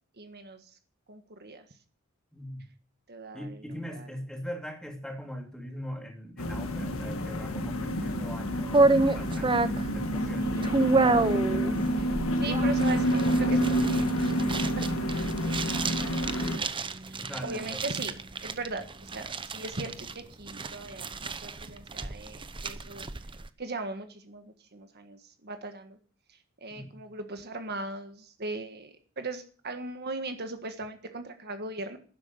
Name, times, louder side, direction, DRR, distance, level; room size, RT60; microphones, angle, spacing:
voice 1, 0.2-0.7 1.1-1.6 3.1-4.1 10.3-11.1 12.0-16.7 17.0-18.1 18.4-23.0 23.6-26.0 26.6-32.0, right 3 dB, 50° right, 7 dB, 1.6 m, -39 dB
voice 2, 2.3-2.7 3.3-11.3 17.1-17.8 26.7-27.0, equal, 5° left, 3 dB, 2.8 m, -41 dB
sound 1, 6.4-16.6, equal, 75° left, 1.9 m, -28 dB
sound 2, 8.7-23.5, right 3 dB, 25° right, 0.8 m, -29 dB
12.0 x 11.0 x 7.8 m, 0.42 s
head